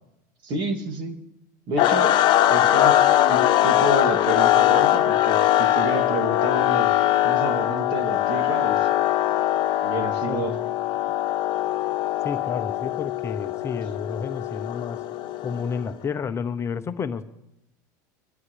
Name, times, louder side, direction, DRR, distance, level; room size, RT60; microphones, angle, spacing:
voice 1, 0.4-1.2 1.7-2.2 2.5-3.0 3.3-6.9 7.2-8.9 9.8-10.6, right 2 dB, 50° right, 4 dB, 2.5 m, -29 dB
sound 1, 1.8-15.9, left 13 dB, 50° left, 1.0 m, -21 dB
voice 2, 12.2-15.0 15.4-17.2, left 6 dB, 25° left, 9 dB, 0.8 m, -30 dB
25.0 x 12.0 x 3.3 m, 0.87 s
supercardioid pair, 110°, 10 cm